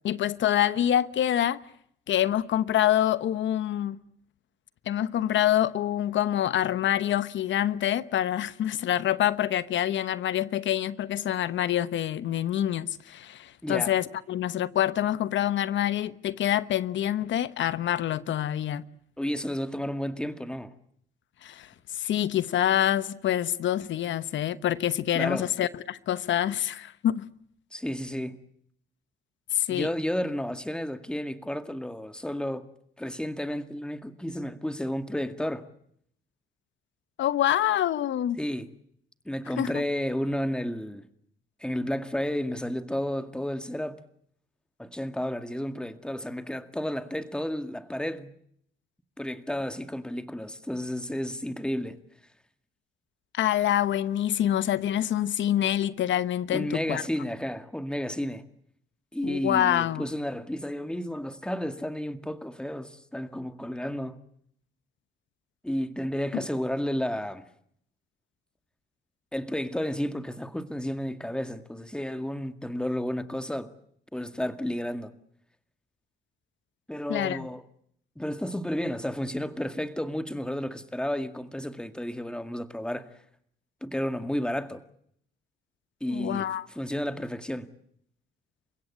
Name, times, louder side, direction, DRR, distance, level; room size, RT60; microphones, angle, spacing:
voice 1, 0.0-1.6 2.1-4.0 4.9-18.8 21.4-21.7 21.9-27.2 29.5-29.9 37.2-38.4 39.6-39.8 53.3-57.0 59.2-60.0 77.1-77.5 86.1-86.7, left 11 dB, 70° left, 1.1 m, -26 dB
voice 2, 13.6-13.9 19.2-20.7 25.1-25.5 27.7-28.4 29.7-32.7 33.0-35.7 38.4-38.7 39.3-41.0 41.6-44.0 44.8-48.3 49.2-52.0 56.5-58.4 59.1-64.2 65.6-67.4 69.3-73.7 74.1-75.1 76.9-77.6 78.2-83.1 83.8-84.8 86.0-87.7, equal, 5° left, 2.0 m, -32 dB
29.5 x 16.5 x 9.7 m
cardioid pair, 90°, 20 cm